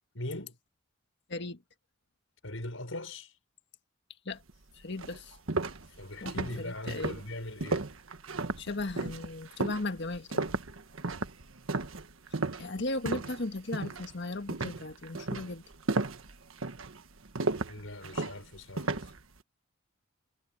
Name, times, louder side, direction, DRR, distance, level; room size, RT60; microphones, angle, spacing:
voice 1, 0.1-0.6 2.4-3.3 6.0-7.8 17.7-19.1, left 1 dB, 80° left, 6.1 m, -40 dB
voice 2, 1.3-1.6 4.2-4.4 4.7-5.4 6.2-7.1 8.6-10.5 12.6-15.6, left 2 dB, 60° left, 1.6 m, -36 dB
sound 1, 4.5-4.6 5.0-13.4 13.7-14.1 14.5-19.2, right 3 dB, 85° right, 1.4 m, -34 dB
head